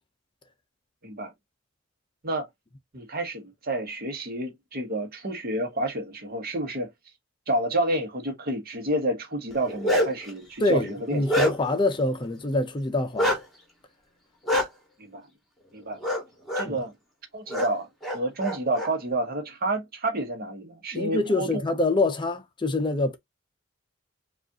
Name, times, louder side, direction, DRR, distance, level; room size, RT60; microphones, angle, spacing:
voice 1, 2.9-6.9 7.5-11.2 15.0-15.3 15.7-16.0 16.6-16.9 17.3-21.6, right 1 dB, 50° right, 1.0 m, -29 dB
Bark, 9.5-10.3 10.8-11.8 13.2-13.4 14.5-14.6 16.0-16.2 16.5-16.7 17.5-17.7 18.0-18.9, left 1 dB, ahead, 1.6 m, -25 dB
voice 2, 10.6-13.4 16.6-16.8 20.9-23.2, left 2 dB, 25° left, 0.5 m, -25 dB
4.9 x 2.4 x 2.7 m
head